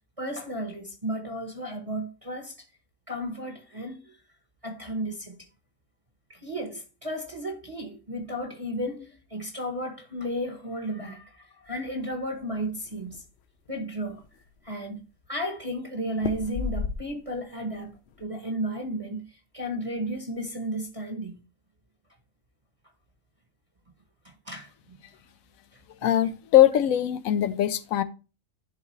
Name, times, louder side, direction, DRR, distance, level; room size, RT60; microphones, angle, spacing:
voice 1, 0.2-2.5 3.1-4.2 4.6-5.5 6.3-13.2 13.7-14.2 14.6-17.9 18.2-21.4 24.2-25.0 25.7-26.1, equal, 25° right, 1.0 m, -34 dB
sound 1, 12.3-13.2 13.7-13.8 14.0-14.7 16.2-17.4 17.8-18.2, left 6 dB, 60° left, 0.8 m, -34 dB
voice 2, 26.0-28.0, left 12 dB, 80° left, 1.1 m, -21 dB
11.0 x 3.6 x 3.1 m
omnidirectional pair, 1.4 m